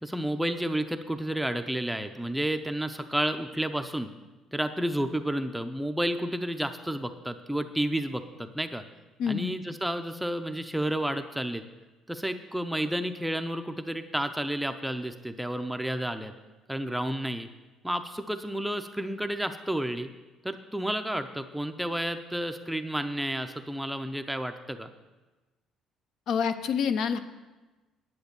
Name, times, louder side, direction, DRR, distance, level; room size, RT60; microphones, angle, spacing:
voice 1, 0.0-4.1 4.5-8.8 9.3-11.6 12.1-16.3 16.7-17.5 17.8-20.1 20.4-24.9, right 1 dB, 5° right, 7 dB, 0.5 m, -31 dB
voice 2, 9.2-9.5 26.3-27.2, left 7 dB, 65° left, 9 dB, 0.7 m, -27 dB
10.5 x 7.9 x 6.8 m, 1.2 s
cardioid pair, 130°, 0 cm